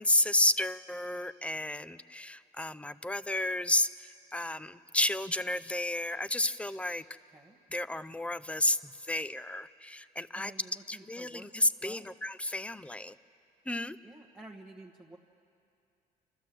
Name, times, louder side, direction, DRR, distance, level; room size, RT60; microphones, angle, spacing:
voice 1, 0.0-7.0 7.7-10.5 10.9-13.1 13.7-14.0, left 1 dB, 5° left, 15 dB, 0.5 m, -31 dB
voice 2, 10.3-11.5 11.8-12.1 14.0-15.2, right 2 dB, 10° right, -1 dB, 1.2 m, -51 dB
29.0 x 13.0 x 7.6 m, 2.6 s
cardioid pair, 110°, 17 cm